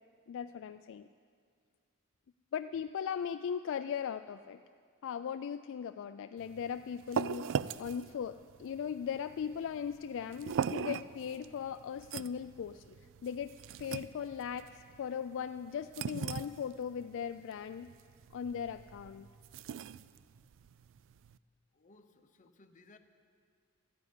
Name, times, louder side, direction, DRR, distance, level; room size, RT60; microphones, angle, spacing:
voice 1, 0.3-1.1 2.5-4.6 5.0-13.0 13.2-17.9 18.3-19.3, left 7 dB, 60° left, 10 dB, 0.3 m, -38 dB
sound 1, 6.4-21.4, right 7 dB, 60° right, 0.3 m, -41 dB
voice 2, 21.7-23.0, left 2 dB, 35° left, 7 dB, 0.9 m, -61 dB
13.5 x 9.8 x 9.6 m, 2.2 s
head